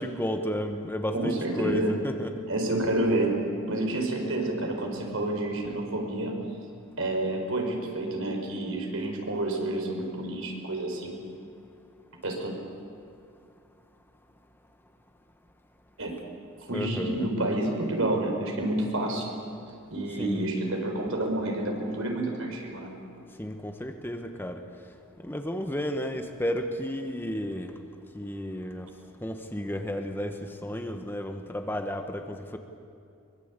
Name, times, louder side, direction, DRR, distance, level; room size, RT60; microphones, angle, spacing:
voice 1, 0.0-2.3 16.7-17.3 20.2-20.5 23.4-24.6 25.2-27.7 28.1-28.9 29.2-32.6, equal, 10° left, 5 dB, 1.2 m, -32 dB
voice 2, 1.1-1.9 2.5-6.4 7.0-11.2 12.2-12.6 16.0-16.2 16.6-19.3 19.9-23.1, right 1 dB, 70° right, 2 dB, 4.7 m, -29 dB
23.5 x 21.5 x 8.3 m, 2.5 s
head